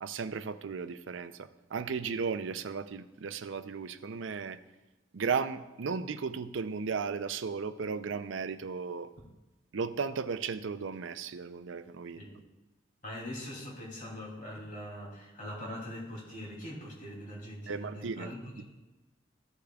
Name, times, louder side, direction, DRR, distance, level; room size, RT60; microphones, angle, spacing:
voice 1, 0.0-4.6 5.1-9.1 9.7-12.2 17.7-18.6, right 5 dB, 75° right, 11 dB, 0.5 m, -35 dB
voice 2, 13.0-18.6, equal, 40° left, -3 dB, 3.0 m, -42 dB
14.5 x 8.4 x 2.4 m, 1.1 s
head